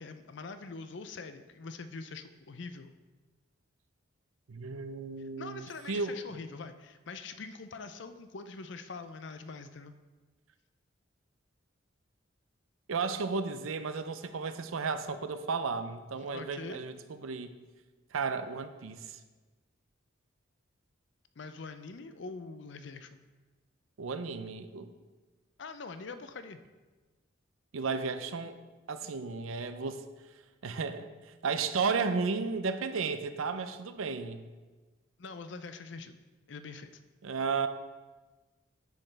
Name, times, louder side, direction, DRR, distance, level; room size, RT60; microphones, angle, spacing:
voice 1, 0.0-2.9 5.4-9.9 16.3-16.8 21.4-23.2 25.6-26.6 35.2-36.2 36.5-37.0, left 4 dB, 60° left, 10 dB, 0.5 m, -44 dB
voice 2, 4.5-6.2 12.9-17.0 17.2-17.5 18.1-19.2 24.0-24.9 27.7-28.6 28.9-30.0 30.6-31.1 31.4-34.5 37.2-37.7, right 4 dB, 90° right, 10 dB, 0.5 m, -33 dB
9.6 x 6.5 x 3.3 m, 1.3 s
head